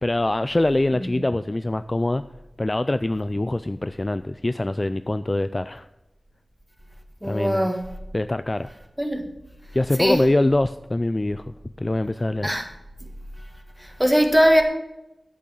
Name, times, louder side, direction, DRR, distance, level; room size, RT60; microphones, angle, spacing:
voice 1, 0.0-2.2 2.6-5.9 7.2-7.7 8.1-8.7 9.7-12.5, left 2 dB, 30° left, 0.3 m, -24 dB
voice 2, 7.2-7.9 9.0-9.2 10.0-10.3 12.4-12.7 13.8-14.6, equal, 5° right, 1.6 m, -20 dB
8.5 x 8.5 x 7.0 m
wide cardioid pair, 90°, 0 cm